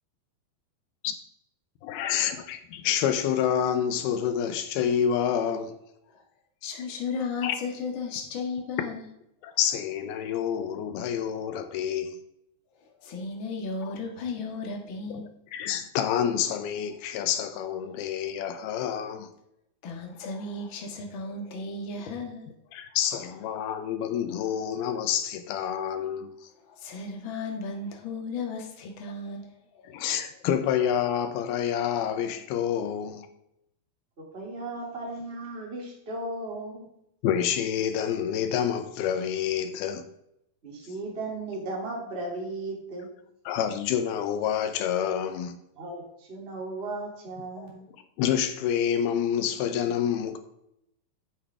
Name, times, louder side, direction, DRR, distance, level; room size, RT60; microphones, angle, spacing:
voice 1, 1.8-5.8 7.4-7.6 9.4-12.2 15.1-15.2 15.5-19.3 22.7-26.3 29.9-33.3 37.2-40.1 43.5-45.6 47.6-47.7 48.2-50.4, left 9 dB, 80° left, 2.7 m, -28 dB
voice 2, 6.6-9.0 9.5-9.6 12.8-15.3 17.8-18.0 19.8-22.5 23.3-23.4 26.6-30.1, left 4 dB, 55° left, 1.4 m, -35 dB
voice 3, 34.2-36.9 40.6-43.1 45.8-47.9, right 2 dB, 20° right, 2.1 m, -36 dB
9.7 x 8.1 x 3.4 m
omnidirectional pair, 4.5 m